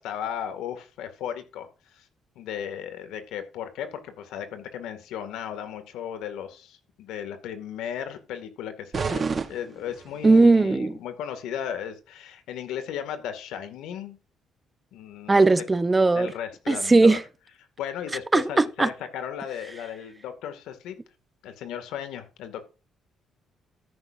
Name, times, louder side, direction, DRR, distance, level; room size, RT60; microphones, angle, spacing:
voice 1, 0.0-2.1 2.4-9.2 9.5-14.2 14.9-15.5 16.1-17.2 17.8-21.0 21.4-22.6, left 9 dB, 90° left, 2.1 m, -35 dB
sound 1, 8.9-10.4, right 5 dB, 35° right, 1.2 m, -30 dB
voice 2, 10.2-11.0 15.3-16.3 16.7-17.2 18.3-18.9, right 3 dB, 20° right, 0.8 m, -18 dB
13.5 x 10.0 x 2.6 m
cardioid pair, 100°, 0 cm